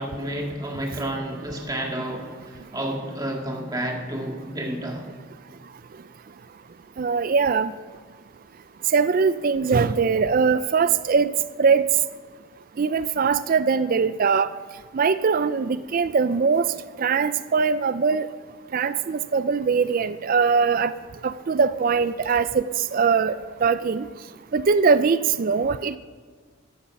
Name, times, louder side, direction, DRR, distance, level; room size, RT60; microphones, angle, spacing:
voice 1, 0.0-5.1, right 1 dB, 20° right, 1.8 m, -30 dB
voice 2, 7.0-7.7 8.9-11.3 11.6-11.8 12.8-14.5 14.9-16.7 17.0-18.3 18.7-20.9 21.2-22.6 22.9-23.3 23.6-24.1 24.5-26.0, right 5 dB, 40° right, 0.4 m, -21 dB
14.5 x 11.5 x 5.9 m
head